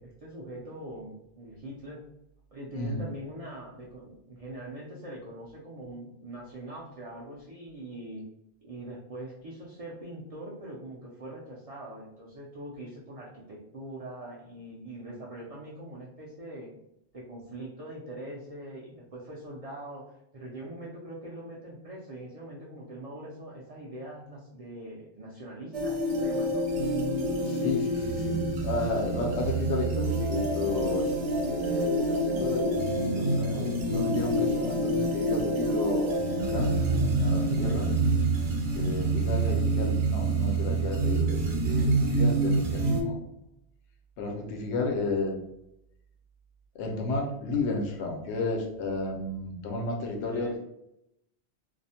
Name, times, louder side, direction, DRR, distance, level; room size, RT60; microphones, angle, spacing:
voice 1, 0.0-2.0 2.5-8.2 8.6-16.7 17.1-26.7 37.5-38.0 38.7-39.0 50.3-50.6, right 1 dB, 55° right, -5 dB, 0.4 m, -42 dB
voice 2, 2.7-3.1 27.4-36.8 37.1-37.9 38.7-43.2 44.2-45.4 46.7-50.6, left 3 dB, 80° left, 1 dB, 0.9 m, -33 dB
sound 1, 25.7-43.0, right 2 dB, 80° right, 0.9 m, -27 dB
2.4 x 2.0 x 2.7 m, 0.83 s
omnidirectional pair, 1.2 m